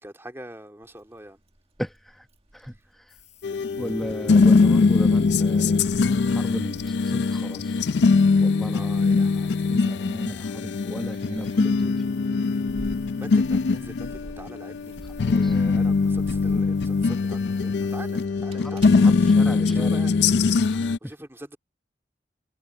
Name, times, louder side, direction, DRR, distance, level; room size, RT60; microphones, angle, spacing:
voice 1, 0.0-1.4 8.7-10.5 13.1-20.6 21.0-21.6, right 1 dB, 15° right, 2.4 m, -44 dB
Keys jangling, 0.8-19.9, right 1 dB, 35° right, 2.0 m, -47 dB
voice 2, 1.8-2.3 2.5-3.2 3.8-5.8 6.3-7.9 8.4-8.9 9.7-12.0 15.2-15.6 18.6-19.9 20.5-21.1, equal, ahead, 1.0 m, -35 dB
sound 1, 3.1-18.3, left 12 dB, 40° left, 5.9 m, -56 dB
sound 2, 3.4-21.0, left 4 dB, 70° left, 0.4 m, -22 dB
head